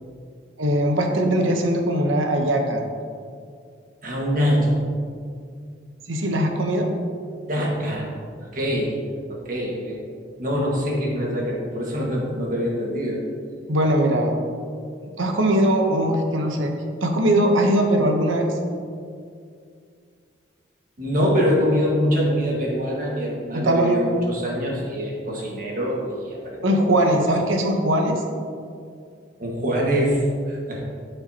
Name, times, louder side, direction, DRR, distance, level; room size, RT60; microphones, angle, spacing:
voice 1, 0.6-2.8 6.1-6.9 13.7-14.4 15.2-16.7 17.0-18.5 23.5-24.0 26.6-28.2, right 1 dB, 80° right, 3 dB, 1.0 m, -20 dB
voice 2, 4.0-4.7 7.5-8.1 8.5-8.9 9.3-10.0 10.4-13.3 21.0-26.9 27.2-27.3 29.4-30.8, equal, 40° right, -3 dB, 1.7 m, -24 dB
13.0 x 5.5 x 2.9 m, 2.2 s
head